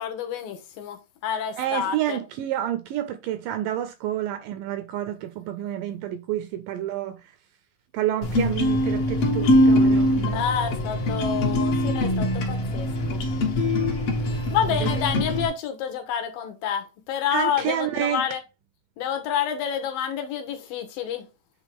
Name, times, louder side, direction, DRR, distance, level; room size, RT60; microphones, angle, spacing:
voice 1, 0.0-2.2 10.3-13.2 14.3-18.4 19.0-21.3, left 8 dB, 75° left, 2.6 m, -29 dB
voice 2, 1.6-7.2 7.9-10.5 14.7-15.0 17.3-18.3, right 12 dB, 80° right, 2.0 m, -29 dB
sound 1, 8.2-15.5, left 1 dB, 55° left, 1.9 m, -22 dB
8.3 x 3.6 x 3.4 m
omnidirectional pair, 4.3 m